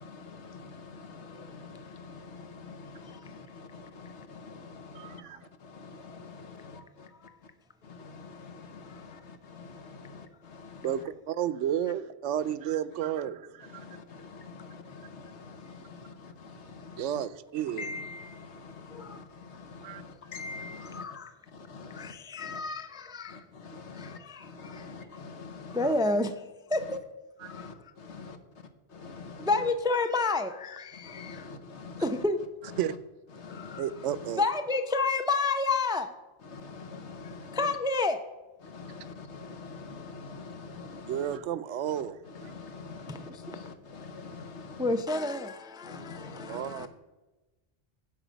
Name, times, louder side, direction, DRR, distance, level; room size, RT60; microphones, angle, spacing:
voice 1, 0.0-5.2 5.6-7.1 7.8-10.9 13.7-17.0 17.8-21.0 21.7-22.1 22.4-22.6 23.3-25.8 27.5-27.7 29.0-29.5 31.0-32.0 33.4-33.8 36.5-37.6 38.6-41.2 42.4-44.8 45.8-46.9, left 4 dB, 70° left, 1.3 m, -45 dB
voice 2, 4.9-5.4 10.8-13.9 17.0-18.0 19.8-20.0 27.4-27.6 32.8-32.9 33.8-34.4 41.1-42.5 46.5-46.9, right 10 dB, 85° right, 0.9 m, -32 dB
voice 3, 8.9-9.2 18.9-19.2 20.8-21.4 21.9-23.4 23.9-24.9 25.7-26.4 26.7-27.0 27.5-27.9 29.4-31.5 32.0-32.4 33.5-33.9 34.4-36.1 37.2-38.2 43.1-43.6 44.8-46.9, left 3 dB, 5° right, 0.3 m, -31 dB
15.5 x 5.5 x 5.1 m
omnidirectional pair, 1.2 m